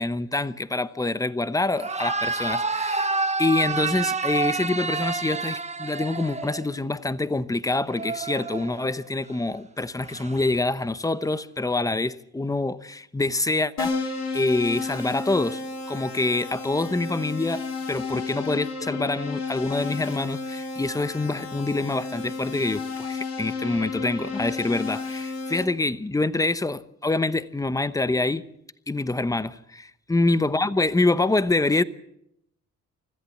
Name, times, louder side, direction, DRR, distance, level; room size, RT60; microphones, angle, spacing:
voice 1, 0.0-14.0 14.3-28.4 28.9-31.8, left 2 dB, 10° left, 1.0 m, -26 dB
sound 1, 1.7-6.9 7.9-9.1 10.0-10.4, right 4 dB, 20° right, 1.3 m, -29 dB
Keyboard (musical), 13.8-25.6, left 4 dB, 60° left, 5.0 m, -32 dB
25.0 x 14.5 x 7.7 m
cardioid pair, 90°, 30 cm